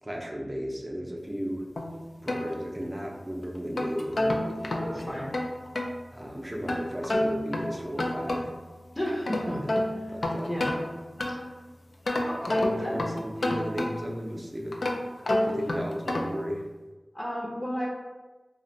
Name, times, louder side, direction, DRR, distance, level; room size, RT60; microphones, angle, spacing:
voice 1, 0.0-1.7 2.2-5.3 6.1-8.5 9.4-9.8 10.1-10.6 12.6-14.8 15.4-16.6, equal, 20° right, 0 dB, 0.5 m, -35 dB
sound 1, 1.8-3.1 3.6-6.0 6.7-8.7 9.1-11.6 12.1-14.2 14.7-16.5, left 1 dB, 80° left, 0.3 m, -30 dB
voice 2, 4.8-5.3 8.9-10.1 10.5-10.8 11.3-11.4 12.3-13.0 17.1-17.9, equal, 35° left, -6 dB, 0.6 m, -33 dB
2.4 x 2.1 x 3.8 m, 1.2 s
wide cardioid pair, 70°, 0 cm